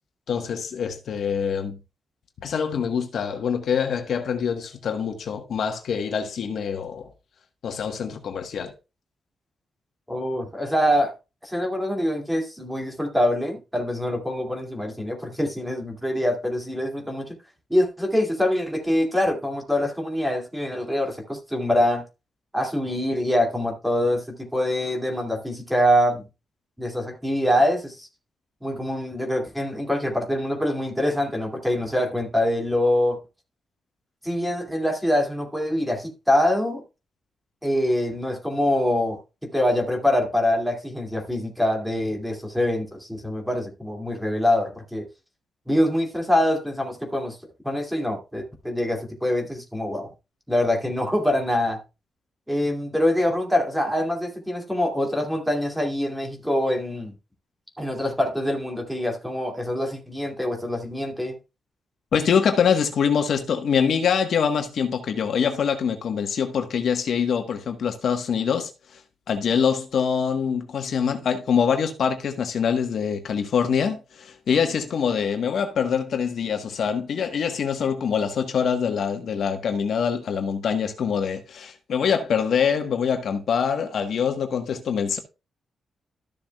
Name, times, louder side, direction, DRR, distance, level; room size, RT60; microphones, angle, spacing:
voice 1, 0.3-1.8 2.4-7.1 7.6-8.7 62.1-69.0 69.3-85.2, left 7 dB, 65° left, 1.2 m, -24 dB
voice 2, 10.1-11.1 11.4-17.4 17.7-22.0 22.5-26.2 26.8-28.1 28.6-33.2 34.2-36.8 37.6-39.2 39.5-45.0 45.7-47.4 47.6-50.1 50.5-51.8 52.5-57.1 57.8-61.4, left 1 dB, 5° right, 2.4 m, -24 dB
13.5 x 6.9 x 2.3 m
wide cardioid pair, 150°, 0 cm